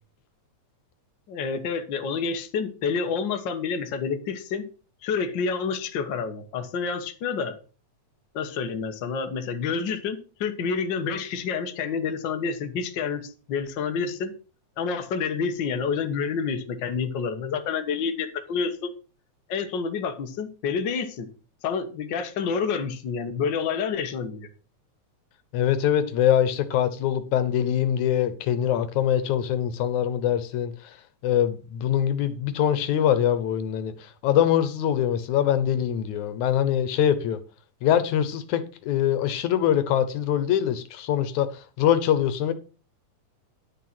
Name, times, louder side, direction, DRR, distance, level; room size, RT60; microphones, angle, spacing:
voice 1, 1.3-4.7 5.0-7.6 8.3-14.3 14.8-18.9 19.5-21.3 21.6-24.5, left 5 dB, 50° left, 1.6 m, -28 dB
voice 2, 25.5-30.9 31.2-37.4 37.8-42.5, left 10 dB, 80° left, 2.4 m, -23 dB
11.0 x 6.8 x 6.0 m
omnidirectional pair, 3.4 m